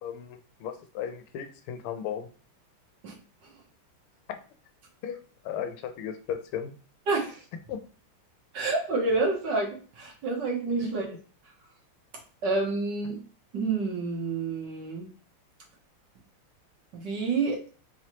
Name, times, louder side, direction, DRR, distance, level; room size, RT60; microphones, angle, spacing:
voice 1, 0.0-2.3 5.0-5.2 5.4-6.7 7.7-7.8 10.8-10.9, left 8 dB, 80° left, 8 dB, 1.5 m, -35 dB
voice 2, 7.1-7.4 8.5-11.0 12.4-13.2 13.5-15.1 16.9-17.6, right 3 dB, 60° right, 0 dB, 1.5 m, -28 dB
4.4 x 3.0 x 2.9 m, 0.38 s
omnidirectional pair, 2.4 m